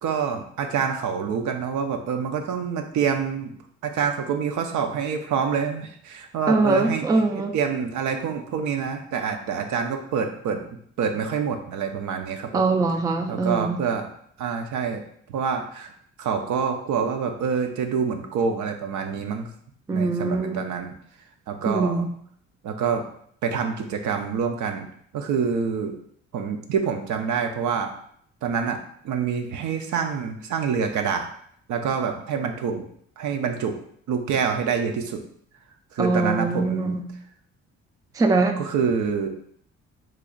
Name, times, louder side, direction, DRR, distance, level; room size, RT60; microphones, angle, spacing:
voice 1, 0.0-3.6 3.8-7.1 7.3-10.6 11.0-12.6 13.3-14.1 14.4-15.0 15.3-15.9 16.2-19.5 19.9-20.9 21.5-22.0 22.6-23.0 23.4-24.9 25.1-25.9 26.3-27.9 28.4-28.8 29.0-31.3 31.7-32.8 33.2-33.8 34.1-35.2 35.9-37.0 38.6-39.3, right 6 dB, 75° right, 5 dB, 0.6 m, -26 dB
voice 2, 6.5-7.6 12.5-13.8 19.9-20.7 21.7-22.1 36.0-37.1 38.1-38.6, right 3 dB, 10° right, 6 dB, 0.3 m, -22 dB
3.2 x 2.4 x 3.8 m, 0.64 s
cardioid pair, 90°, 30 cm